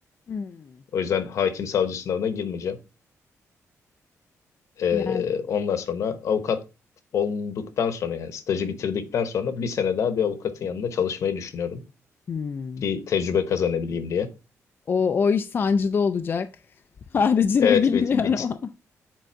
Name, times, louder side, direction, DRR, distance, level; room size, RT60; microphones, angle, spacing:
voice 1, 0.3-0.8 4.9-5.3 12.3-12.8 14.9-16.5 17.1-18.7, left 6 dB, 40° left, 0.4 m, -23 dB
voice 2, 0.9-2.8 4.8-6.6 7.1-11.8 12.8-14.3 17.6-18.5, left 7 dB, 65° left, 0.9 m, -26 dB
7.6 x 3.8 x 4.5 m
cardioid pair, 135°, 6 cm